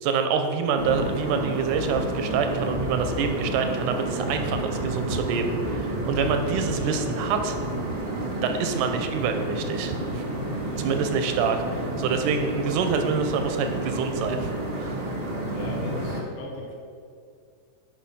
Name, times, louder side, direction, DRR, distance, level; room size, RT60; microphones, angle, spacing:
voice 1, 0.0-7.6 8.4-10.2 10.8-11.6 12.0-15.0, right 5 dB, 85° right, 6 dB, 2.2 m, -26 dB
sound 1, 0.7-16.2, right 1 dB, 40° right, 0.8 m, -30 dB
voice 2, 15.5-16.7, left 2 dB, 80° left, -1 dB, 2.5 m, -38 dB
10.5 x 4.7 x 5.5 m, 2.3 s
omnidirectional pair, 3.6 m